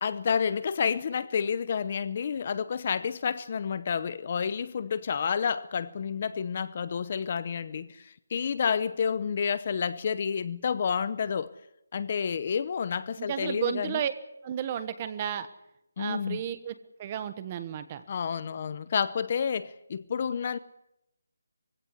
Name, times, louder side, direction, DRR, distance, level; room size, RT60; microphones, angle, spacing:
voice 1, 0.0-11.5 11.9-14.0 16.0-16.4 18.1-20.6, left 6 dB, 30° left, 0.7 m, -30 dB
voice 2, 13.2-14.1 14.4-15.5 16.0-18.0, right 9 dB, 20° right, 1.1 m, -33 dB
22.5 x 16.5 x 9.8 m
hypercardioid pair, 175°, 0 cm